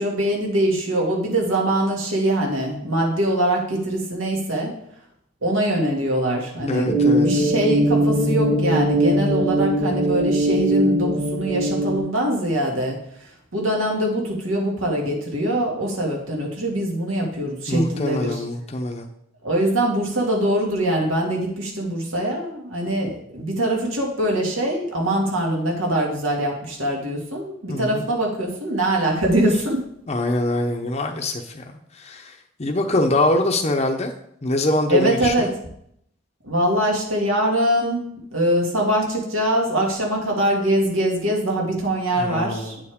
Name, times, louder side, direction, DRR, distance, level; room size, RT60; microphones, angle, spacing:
voice 1, 0.0-4.7 5.4-12.9 13.5-18.4 19.4-29.8 34.9-35.5 36.4-38.0 38.3-42.8, right 1 dB, 90° right, -1 dB, 2.3 m, -23 dB
voice 2, 6.7-7.3 17.7-19.1 27.7-28.1 30.1-31.6 31.9-34.1 34.4-35.5 42.2-42.8, left 1 dB, 30° left, 2 dB, 0.7 m, -23 dB
sound 1, 6.9-12.0, right 1 dB, 20° right, 1.2 m, -20 dB
9.1 x 6.9 x 3.6 m, 0.72 s
head